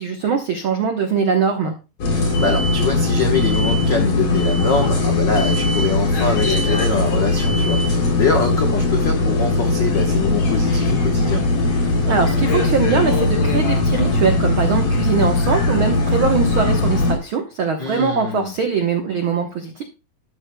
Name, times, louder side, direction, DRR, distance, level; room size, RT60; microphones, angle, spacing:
voice 1, 0.0-1.7 12.1-19.8, right 6 dB, 80° right, 4 dB, 1.1 m, -21 dB
sound 1, 2.0-17.1, left 2 dB, 65° left, 4.8 m, -19 dB
voice 2, 2.2-11.4 17.8-18.5, left 4 dB, 85° left, 3 dB, 0.9 m, -24 dB
12.5 x 12.0 x 2.2 m, 0.29 s
omnidirectional pair, 4.0 m